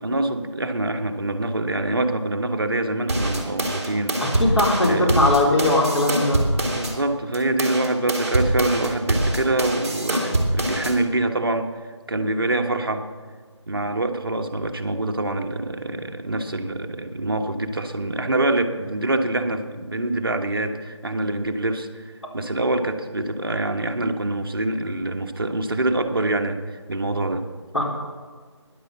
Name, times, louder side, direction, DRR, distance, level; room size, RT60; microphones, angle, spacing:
voice 1, 0.0-4.2 4.8-5.5 6.1-11.7 12.1-13.0 13.7-22.0 22.3-26.6 26.9-27.4, right 2 dB, 50° right, 5 dB, 1.2 m, -25 dB
sound 1, 3.1-6.9 7.3-10.9, right 1 dB, 30° right, 2.3 m, -24 dB
voice 2, 4.2-6.4 10.1-10.2 27.7-27.8, left 2 dB, 70° left, -2 dB, 4.1 m, -20 dB
13.0 x 10.5 x 7.2 m, 1.5 s
figure-of-eight pair, 170°, 16 cm